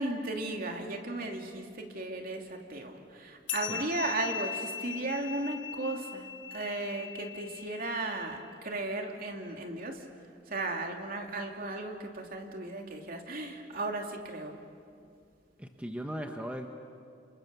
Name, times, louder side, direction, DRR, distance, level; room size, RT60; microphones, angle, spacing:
voice 1, 0.0-10.0 10.5-14.6, right 2 dB, 50° right, 2 dB, 2.8 m, -35 dB
sound 1, 3.5-8.4, left 9 dB, 70° left, 1.1 m, -40 dB
voice 2, 15.6-16.7, equal, 5° right, 3 dB, 1.2 m, -38 dB
29.5 x 27.5 x 6.9 m, 2.3 s
head